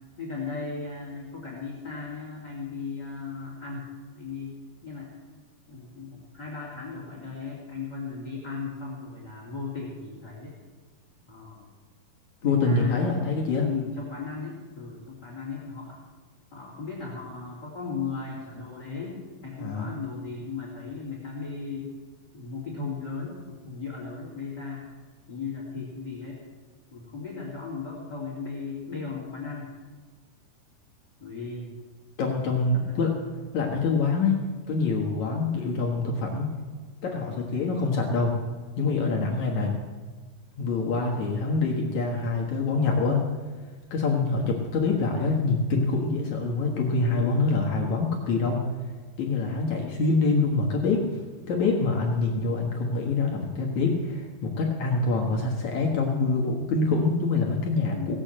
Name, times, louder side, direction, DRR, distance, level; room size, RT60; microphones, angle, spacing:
voice 1, 0.2-4.6 4.8-5.1 5.7-10.6 11.3-11.7 12.4-16.0 16.5-21.9 22.3-24.9 25.3-26.4 26.9-29.7 31.2-31.7 32.9-33.0 35.5-35.9 37.4-37.8 39.1-39.5 47.1-47.4 49.4-49.7 57.9-58.1, left 4 dB, 30° left, -4 dB, 3.1 m, -37 dB
voice 2, 12.4-13.7 19.6-19.9 32.2-33.1 33.5-34.4 34.7-36.5 37.0-38.3 38.8-39.7 40.6-43.2 43.9-48.6 49.2-51.2 51.5-58.2, left 3 dB, 60° left, -1 dB, 2.4 m, -25 dB
17.5 x 8.4 x 7.6 m, 1.4 s
omnidirectional pair, 4.5 m